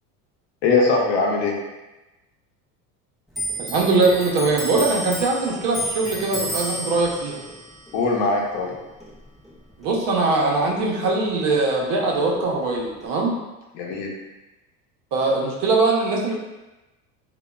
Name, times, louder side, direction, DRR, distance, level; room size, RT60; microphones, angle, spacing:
voice 1, 0.6-1.6 7.9-8.8 13.7-14.1, left 3 dB, 55° left, -1 dB, 0.8 m, -21 dB
Clock, 3.3-10.3 10.6-11.9 12.2-13.1, equal, ahead, 0.4 m, -33 dB
voice 2, 3.6-7.5 9.8-13.4 15.1-16.3, right 3 dB, 55° right, -1 dB, 0.7 m, -21 dB
2.8 x 2.2 x 2.2 m, 1.1 s
hypercardioid pair, 85°, 47 cm